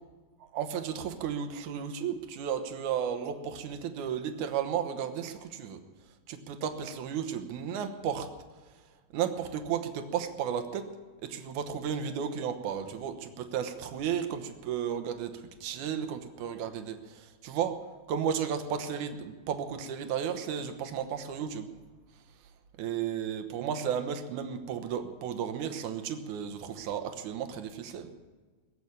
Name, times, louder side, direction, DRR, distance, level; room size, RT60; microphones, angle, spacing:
voice 1, 0.5-5.8 6.3-8.3 9.1-10.9 11.2-15.3 15.6-17.8 18.1-21.7 22.8-28.1, right 8 dB, 65° right, 8 dB, 2.1 m, -33 dB
20.5 x 8.0 x 8.6 m, 1.4 s
omnidirectional pair, 4.5 m